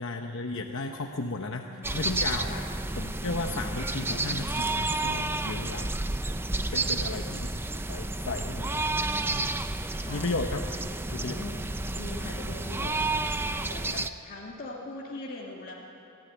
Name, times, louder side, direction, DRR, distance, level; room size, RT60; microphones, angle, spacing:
voice 1, 0.0-2.6 3.0-5.9 6.7-7.5 7.9-8.9 9.3-9.5 10.1-10.6 11.1-11.4, left 3 dB, 60° left, 4 dB, 1.0 m, -34 dB
voice 2, 1.2-2.1 2.5-2.7 6.7-7.7 10.0-10.3 10.7-13.0 13.4-15.7, left 2 dB, 40° left, -3 dB, 2.0 m, -43 dB
sound 1, 1.8-14.1, right 2 dB, 10° right, 0.5 m, -31 dB
25.0 x 15.0 x 9.4 m, 2.8 s
head